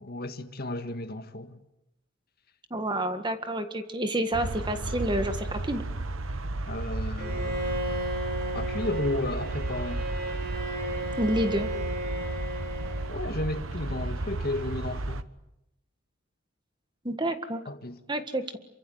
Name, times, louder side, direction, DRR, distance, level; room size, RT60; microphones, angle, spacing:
voice 1, 0.0-1.6 6.7-8.0 8.5-10.0 13.1-15.2 17.7-18.0, left 1 dB, 50° left, 1.8 m, -33 dB
voice 2, 2.7-5.8 11.2-11.7 17.0-17.6 18.1-18.6, right 1 dB, 25° right, 1.8 m, -29 dB
sound 1, 4.3-15.2, right 2 dB, 80° right, 1.2 m, -33 dB
Bowed string instrument, 7.2-13.5, right 1 dB, 50° right, 4.2 m, -34 dB
27.5 x 24.5 x 8.0 m
head